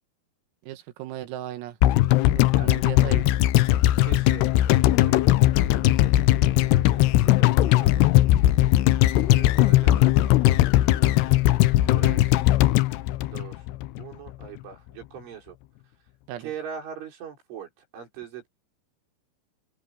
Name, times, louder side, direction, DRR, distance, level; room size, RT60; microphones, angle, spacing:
voice 1, 0.6-1.8 2.3-3.3 11.8-12.4 16.3-16.5, right 13 dB, 85° right, 4.2 m, -37 dB
sound 1, 1.8-14.0 14.3-14.4, left 15 dB, 85° left, 2.4 m, -19 dB
voice 2, 2.5-3.1 4.0-8.2 9.1-10.4 10.8-12.5 13.2-13.7 14.0-15.6 16.4-18.5, right 8 dB, 65° right, 7.4 m, -42 dB
open air
omnidirectional pair, 5.9 m